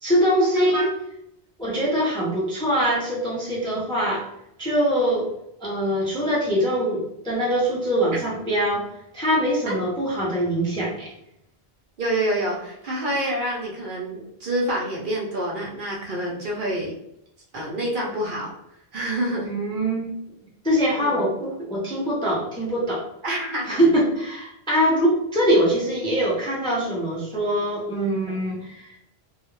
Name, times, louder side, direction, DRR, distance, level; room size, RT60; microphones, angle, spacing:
voice 1, 0.0-0.9 1.6-4.3 4.6-5.3 5.6-8.8 9.1-11.1 19.4-20.1 20.6-23.0 23.7-29.0, equal, 5° left, -6 dB, 0.4 m, -23 dB
voice 2, 0.6-0.9 9.7-9.8 12.0-16.9 17.5-18.5 18.9-19.5 20.9-21.2 23.2-23.9, right 1 dB, 60° right, -3 dB, 0.7 m, -27 dB
2.3 x 2.0 x 3.0 m, 0.79 s
omnidirectional pair, 1.1 m